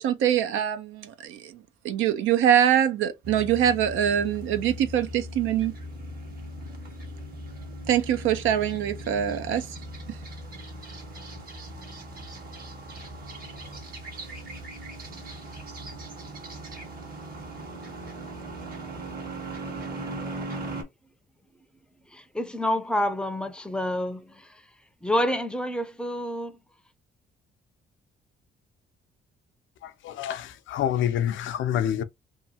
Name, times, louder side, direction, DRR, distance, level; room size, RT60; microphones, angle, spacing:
voice 1, 0.0-1.4 1.8-5.7 7.9-9.6, right 10 dB, 90° right, 0.6 m, -23 dB
sound 1, 3.2-20.8, right 1 dB, 50° right, 1.3 m, -39 dB
voice 2, 22.1-24.7 25.0-26.6, left 1 dB, 5° left, 0.5 m, -28 dB
voice 3, 29.8-32.0, left 10 dB, 75° left, 0.5 m, -27 dB
2.8 x 2.3 x 2.7 m
cardioid pair, 90°, 20 cm